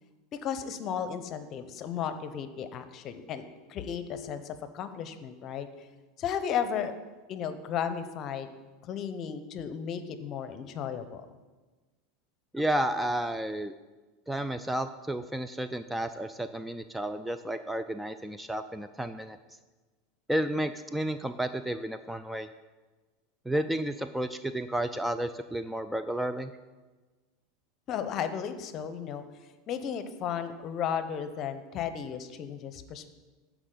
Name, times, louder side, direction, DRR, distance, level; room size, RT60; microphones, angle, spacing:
voice 1, 0.3-5.9 6.2-6.9 7.3-8.5 8.9-11.3 27.9-29.2 29.7-33.1, left 8 dB, 45° left, 11 dB, 0.7 m, -34 dB
voice 2, 12.5-13.7 14.3-19.4 20.3-22.5 23.5-26.5, right 1 dB, 5° right, 10 dB, 0.3 m, -32 dB
13.0 x 4.8 x 3.9 m, 1.3 s
hypercardioid pair, 100°, 0 cm